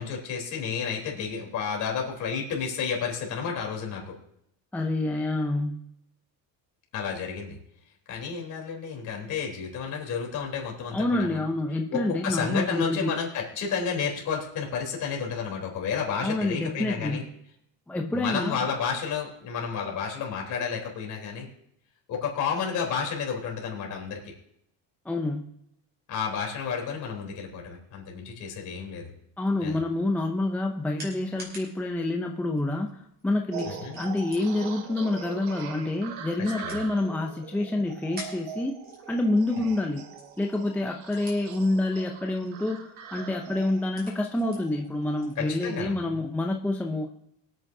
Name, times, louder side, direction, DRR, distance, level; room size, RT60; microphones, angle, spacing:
voice 1, 0.0-4.1 6.9-7.6 8.1-11.4 11.9-17.2 18.1-21.5 22.1-24.3 26.1-29.1 29.6-29.8 33.7-34.0 36.4-36.8 45.4-45.9, left 6 dB, 45° left, 0 dB, 3.7 m, -31 dB
voice 2, 4.7-5.8 10.9-13.1 16.2-17.4 17.9-18.6 25.1-25.5 29.4-38.8 39.1-40.1 40.4-47.1, left 2 dB, 5° left, 2 dB, 0.5 m, -28 dB
sound 1, 30.2-46.6, equal, 25° right, 4.7 m, -51 dB
sound 2, 33.5-45.8, right 7 dB, 80° right, 1.5 m, -43 dB
23.5 x 9.0 x 2.7 m, 0.76 s
cardioid pair, 160°, 40 cm